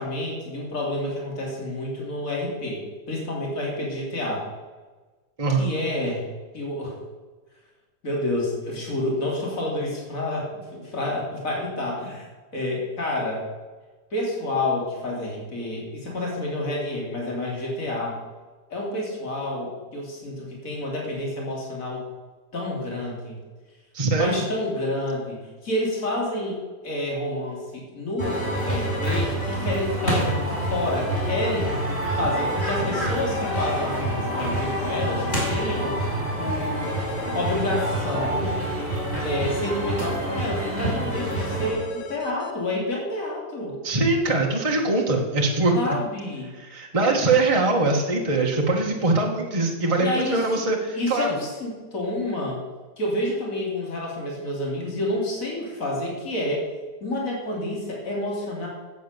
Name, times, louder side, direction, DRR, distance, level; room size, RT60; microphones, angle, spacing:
voice 1, 0.0-2.8 3.1-4.5 5.6-6.3 6.5-7.0 8.0-12.3 12.5-13.4 14.1-18.2 18.7-22.0 22.5-23.4 24.2-28.4 28.7-31.7 32.2-36.9 37.3-38.6 39.2-43.8 45.7-46.5 50.0-50.7 50.9-52.6 53.0-56.6 57.0-58.7, left 1 dB, 45° left, -2 dB, 3.5 m, -29 dB
voice 2, 23.9-24.4 43.8-45.8 46.6-51.4, right 3 dB, 20° right, 0 dB, 1.3 m, -22 dB
sound 1, 28.2-29.5 32.5-33.9 36.8-38.2 41.1-42.5, left 3 dB, 65° left, 1.7 m, -36 dB
sound 2, 28.2-41.7, right 1 dB, 25° left, 5.4 m, -27 dB
12.5 x 8.3 x 6.7 m, 1.3 s
omnidirectional pair, 1.9 m